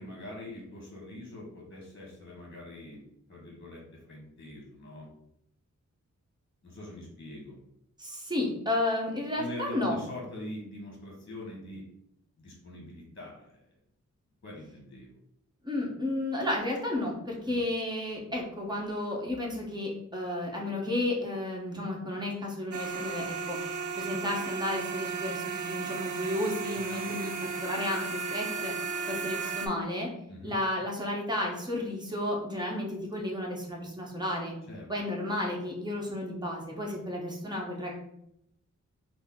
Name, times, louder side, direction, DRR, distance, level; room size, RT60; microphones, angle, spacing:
voice 1, 0.0-3.0 3.3-5.1 6.6-7.6 9.3-11.8 12.4-13.6 14.4-15.1 17.5-17.6 30.3-30.6 34.7-34.9, left 1 dB, 40° left, -2 dB, 1.2 m, -43 dB
voice 2, 8.0-10.0 15.6-30.1 30.4-34.5 34.9-37.9, left 1 dB, 15° right, -2 dB, 1.0 m, -32 dB
sound 1, 22.7-29.7, right 5 dB, 75° right, 0.6 m, -35 dB
4.1 x 2.0 x 3.6 m, 0.76 s
wide cardioid pair, 100°, 30 cm